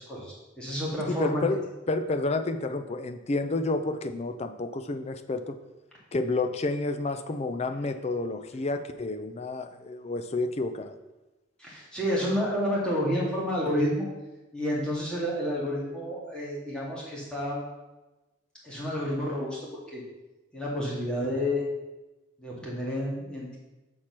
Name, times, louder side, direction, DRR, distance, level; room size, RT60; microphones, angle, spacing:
voice 1, 0.1-1.4 11.6-14.1 14.5-17.6 18.6-20.0 20.5-21.6 22.4-23.6, equal, 5° left, -6 dB, 2.2 m, -30 dB
voice 2, 1.1-5.6 6.1-10.9, left 2 dB, 35° left, 9 dB, 0.5 m, -30 dB
6.4 x 4.4 x 5.9 m, 1.1 s
head